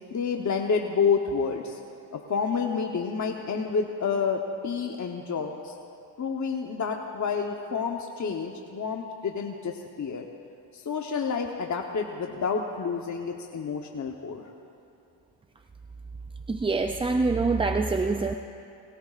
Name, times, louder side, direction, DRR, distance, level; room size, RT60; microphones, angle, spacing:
voice 1, 0.1-1.8 2.1-5.7 6.2-10.2 10.7-14.4, left 5 dB, 40° left, 2 dB, 1.0 m, -29 dB
voice 2, 16.5-18.3, right 3 dB, 15° right, 6 dB, 0.3 m, -25 dB
26.0 x 18.0 x 2.5 m, 2.6 s
cardioid pair, 90°, 45 cm